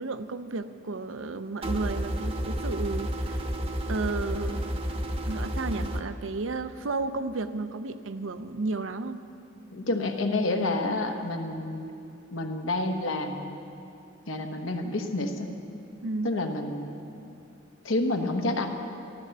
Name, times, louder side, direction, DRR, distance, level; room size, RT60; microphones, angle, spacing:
voice 1, 0.0-3.4 3.9-4.8 5.3-9.2 16.0-16.3, right 3 dB, 75° right, 10 dB, 0.6 m, -33 dB
sound 1, 1.6-6.0, equal, 30° right, 0.9 m, -31 dB
voice 2, 9.7-11.9 12.3-13.5 14.3-15.5 16.2-16.9 17.8-18.7, left 2 dB, 75° left, 3 dB, 1.3 m, -29 dB
13.0 x 13.0 x 6.7 m, 2.6 s
head